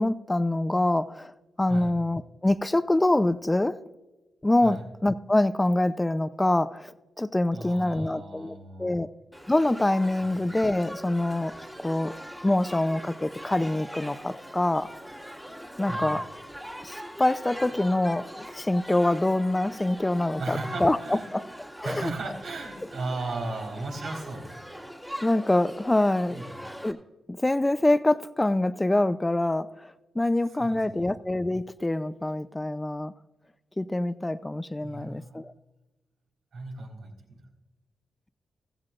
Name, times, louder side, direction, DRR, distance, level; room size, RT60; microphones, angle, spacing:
voice 1, 0.0-3.8 4.4-6.9 7.2-9.1 9.5-11.5 11.8-12.1 12.4-14.9 15.8-16.2 16.8-21.4 21.8-22.1 25.2-26.4 26.8-27.0 27.3-33.1 33.8-35.5, left 1 dB, 20° left, 13 dB, 0.6 m, -25 dB
voice 2, 7.5-9.0 15.9-16.1 20.4-21.3 21.8-24.5 26.3-26.6 30.6-31.1 34.8-35.4 36.5-37.4, right 2 dB, 75° right, -1 dB, 4.1 m, -36 dB
Shout / Human group actions, 9.3-26.9, equal, 5° right, 2.0 m, -41 dB
16.0 x 14.5 x 2.5 m, 1.1 s
supercardioid pair, 45°, 0 cm